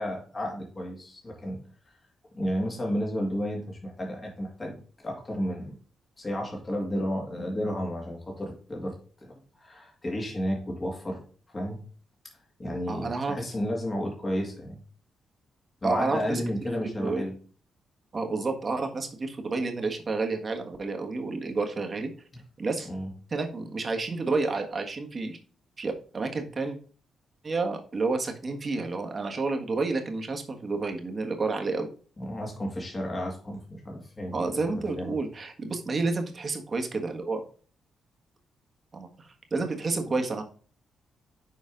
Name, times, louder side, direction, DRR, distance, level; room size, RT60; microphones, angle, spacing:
voice 1, 0.0-1.6 2.3-4.8 5.0-5.7 6.2-8.9 9.6-11.2 11.5-11.8 12.6-14.8 15.8-17.3 22.9-23.1 32.2-34.6 34.9-35.1, equal, 30° left, -1 dB, 2.2 m, -32 dB
voice 2, 12.9-13.4 15.8-16.4 16.8-17.2 18.1-22.1 22.6-22.9 23.3-25.4 25.8-26.8 27.4-31.9 34.3-37.4 38.9-40.4, right 3 dB, 40° right, 4 dB, 1.5 m, -30 dB
6.8 x 4.6 x 3.8 m, 0.42 s
cardioid pair, 70°, 0 cm